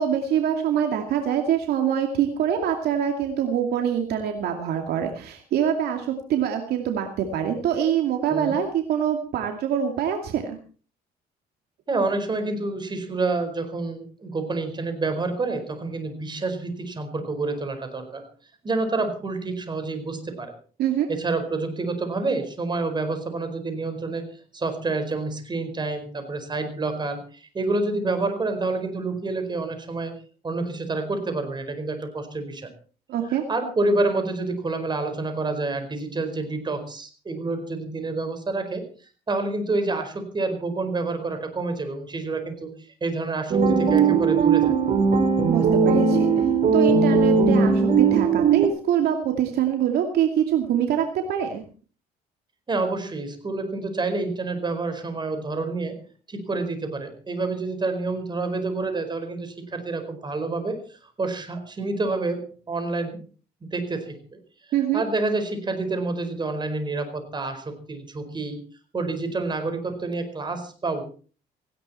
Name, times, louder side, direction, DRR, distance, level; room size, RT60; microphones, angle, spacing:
voice 1, 0.0-10.6 20.8-21.1 33.1-33.4 45.5-51.6 64.7-65.0, right 9 dB, 70° right, 4 dB, 2.5 m, -24 dB
voice 2, 11.9-18.2 18.6-20.5 21.1-30.1 30.4-32.7 33.3-38.9 39.3-42.7 43.0-44.7 52.7-56.0 56.3-60.8 61.2-63.2 63.6-64.2 64.9-68.6 68.9-71.0, right 3 dB, 25° right, 8 dB, 4.7 m, -28 dB
sound 1, 43.5-48.7, right 5 dB, 45° right, 3.8 m, -19 dB
18.0 x 16.5 x 4.3 m, 0.40 s
cardioid pair, 110°, 17 cm